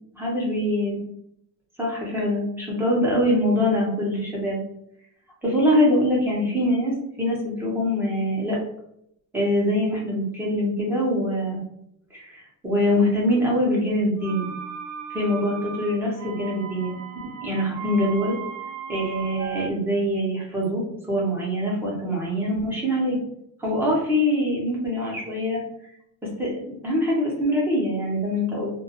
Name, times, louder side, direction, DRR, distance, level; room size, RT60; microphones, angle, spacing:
voice 1, 0.1-1.0 1.8-4.6 5.4-8.6 9.3-11.6 12.1-14.5 15.1-16.9 17.4-18.4 18.9-23.2 23.6-25.6 26.4-28.7, left 1 dB, 5° right, -5 dB, 0.5 m, -24 dB
sound 1, 14.2-19.7, right 7 dB, 75° right, 0.5 m, -37 dB
2.2 x 2.1 x 2.8 m, 0.74 s
cardioid pair, 165°, 43 cm